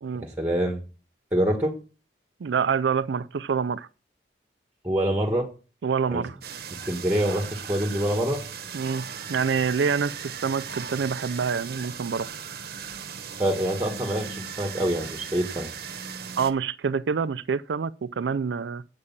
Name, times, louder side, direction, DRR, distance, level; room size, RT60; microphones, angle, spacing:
voice 1, 0.2-0.8 1.3-1.7 4.8-5.5 6.1-6.2 6.9-8.4 13.4-15.7, right 1 dB, 10° right, 1.6 m, -25 dB
voice 2, 2.4-3.9 5.8-6.4 8.7-12.3 16.4-18.8, right 6 dB, 85° right, 0.4 m, -26 dB
sound 1, 6.4-16.5, right 6 dB, 55° right, 1.0 m, -37 dB
8.5 x 6.6 x 7.1 m
head